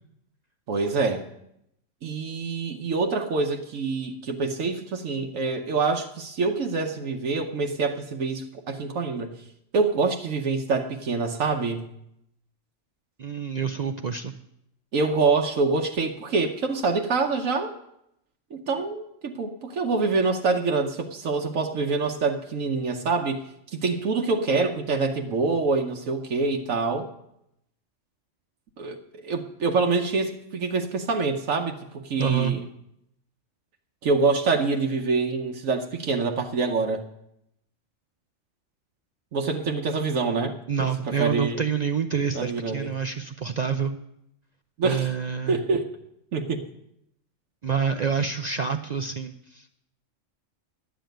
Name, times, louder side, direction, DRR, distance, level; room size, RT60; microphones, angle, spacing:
voice 1, 0.7-1.3 2.0-9.4 9.7-11.9 14.9-17.7 18.5-23.4 23.7-27.1 28.8-29.0 29.2-32.7 34.0-37.0 39.3-40.6 41.1-41.7 42.3-42.9 44.8-45.1 45.5-45.9 46.3-46.6, right 4 dB, 90° right, 3 dB, 1.3 m, -26 dB
voice 2, 13.2-14.3 32.2-32.6 40.7-44.0 44.8-45.6 47.6-49.8, right 6 dB, 60° right, 8 dB, 0.4 m, -27 dB
11.5 x 7.5 x 9.0 m, 0.79 s
omnidirectional pair, 1.3 m